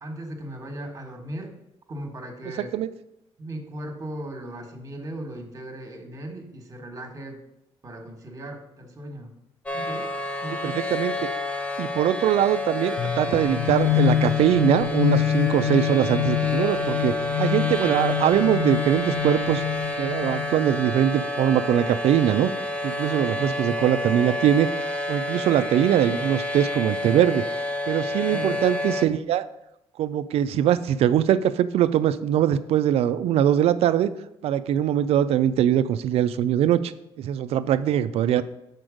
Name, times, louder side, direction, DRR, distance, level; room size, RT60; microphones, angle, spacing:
voice 1, 0.0-1.5 1.9-2.8 3.4-7.4 7.8-9.3 9.7-10.1 10.4-10.9 13.2-13.4 23.0-23.8 28.3-28.6 34.7-34.8, right 1 dB, 30° right, 4 dB, 1.3 m, -37 dB
voice 2, 2.6-2.9 10.6-11.3 11.8-19.6 20.0-22.5 22.8-24.7 25.1-27.4 27.9-29.5 30.0-34.1 34.4-36.9 37.2-38.4, right 10 dB, 70° right, 13 dB, 0.4 m, -22 dB
sound 1, 9.7-29.1, left 1 dB, 10° left, 0.7 m, -29 dB
sound 2, 13.0-20.7, left 12 dB, 55° left, 0.8 m, -26 dB
6.2 x 4.4 x 5.0 m, 0.86 s
cardioid pair, 100°, 11 cm